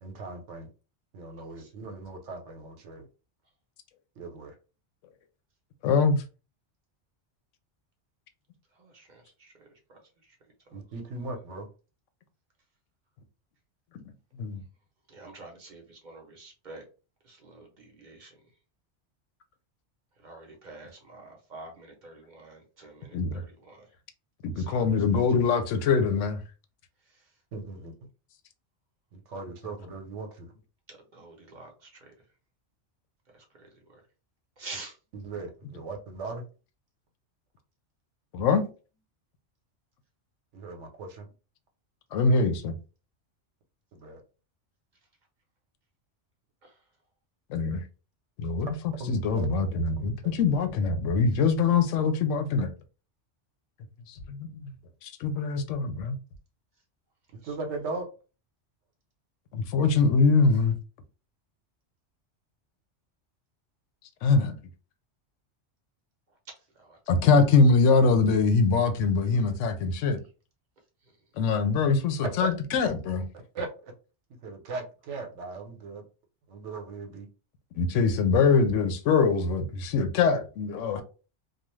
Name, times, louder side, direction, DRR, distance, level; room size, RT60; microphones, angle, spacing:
voice 1, 0.0-0.7 1.1-3.1 4.2-4.5 10.7-11.7 27.5-28.0 29.1-30.5 35.1-36.4 40.5-41.3 43.9-44.2 49.0-49.5 57.3-58.1 72.2-72.5 73.5-73.9 74.4-76.1 76.5-77.3, right 3 dB, 75° right, 1.0 m, -38 dB
voice 2, 5.8-6.2 14.4-14.6 23.1-23.4 24.4-26.4 38.3-38.7 42.1-42.7 47.5-47.8 48.4-48.7 49.1-52.7 54.1-54.7 55.0-56.1 59.5-60.8 64.2-64.6 67.1-70.2 71.4-73.3 77.8-81.0, left 4 dB, 85° left, 0.9 m, -23 dB
voice 3, 8.8-10.4 10.7-10.8 15.1-16.8 17.2-18.4 20.2-23.9 24.6-24.7 27.1-27.2 30.9-32.1 33.3-34.0 34.6-35.0 46.6-46.8 57.4-57.6 66.5-67.0, right 3 dB, 45° right, 0.7 m, -48 dB
2.4 x 2.2 x 3.0 m
omnidirectional pair, 1.2 m